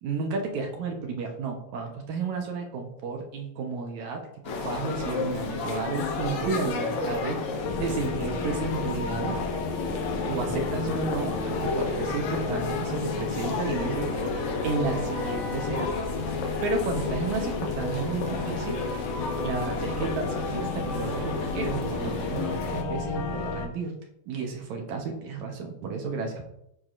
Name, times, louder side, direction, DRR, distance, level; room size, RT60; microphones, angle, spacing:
voice 1, 0.0-9.4 10.3-14.1 14.6-18.8 19.4-23.9 24.3-26.5, right 4 dB, 70° right, 2 dB, 2.1 m, -32 dB
sound 1, 4.4-22.8, left 4 dB, 65° left, 2.1 m, -32 dB
sound 2, 7.7-23.7, left 3 dB, 85° left, 2.7 m, -33 dB
14.0 x 4.7 x 2.5 m, 0.80 s
omnidirectional pair, 3.9 m